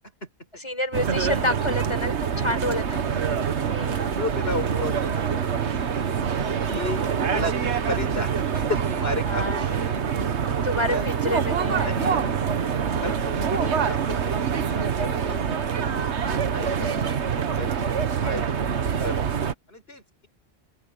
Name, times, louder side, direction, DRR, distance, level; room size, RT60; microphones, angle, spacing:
voice 1, 0.6-3.3 3.7-4.2 9.3-9.7 10.6-12.5, left 1 dB, 25° left, 6.8 m, -29 dB
sound 1, 0.9-19.5, right 7 dB, 90° right, 1.5 m, -25 dB
voice 2, 2.3-2.7 4.1-6.4 6.6-7.6 7.9-10.0 10.5-11.0 11.8-14.4 14.7-15.8 16.3-17.1 17.5-18.4 19.0-19.2 19.7-20.3, left 1 dB, 65° left, 5.6 m, -34 dB
open air
omnidirectional pair, 1.1 m